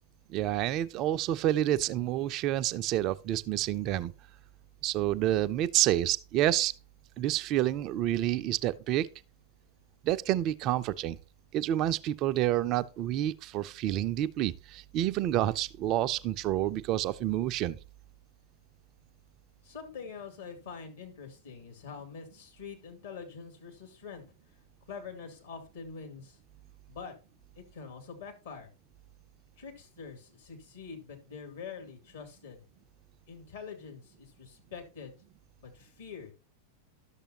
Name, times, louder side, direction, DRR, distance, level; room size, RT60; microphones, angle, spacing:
voice 1, 0.3-4.1 4.8-6.7 7.2-9.1 10.0-11.2 11.5-17.8, right 13 dB, 40° right, 0.4 m, -28 dB
voice 2, 19.6-24.2 24.9-26.4 26.9-27.1 27.5-28.7 29.6-32.6 33.3-35.1 35.6-36.3, left 5 dB, 65° left, 2.4 m, -45 dB
11.5 x 6.7 x 2.8 m
figure-of-eight pair, 90°, 0 cm